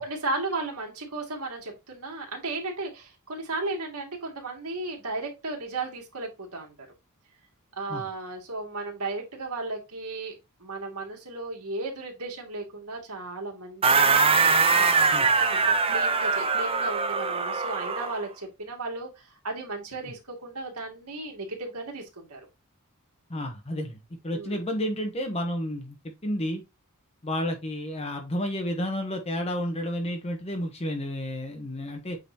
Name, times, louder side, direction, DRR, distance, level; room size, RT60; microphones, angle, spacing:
voice 1, 0.0-6.7 7.8-10.3 10.6-22.5 24.3-24.6, right 2 dB, 80° right, 2.4 m, -35 dB
sound 1, 13.8-18.2, right 4 dB, 25° right, 0.6 m, -22 dB
voice 2, 23.3-26.0 26.2-26.6 27.2-32.2, equal, 30° left, 1.0 m, -31 dB
8.4 x 4.0 x 2.9 m
head